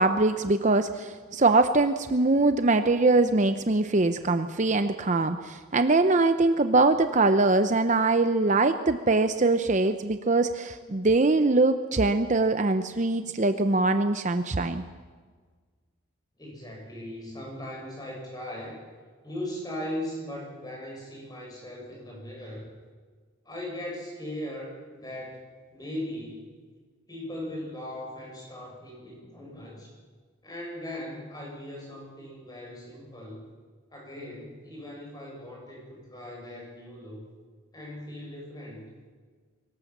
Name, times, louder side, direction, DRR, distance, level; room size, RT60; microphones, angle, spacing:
voice 1, 0.0-14.8, right 3 dB, 35° right, 9 dB, 0.7 m, -23 dB
voice 2, 16.4-18.8 19.2-22.7 23.5-25.4 25.7-26.5 27.1-29.9 30.4-33.4 33.9-37.2 37.7-38.8, left 1 dB, 20° left, -1 dB, 6.8 m, -39 dB
23.5 x 18.0 x 7.3 m, 1.5 s
head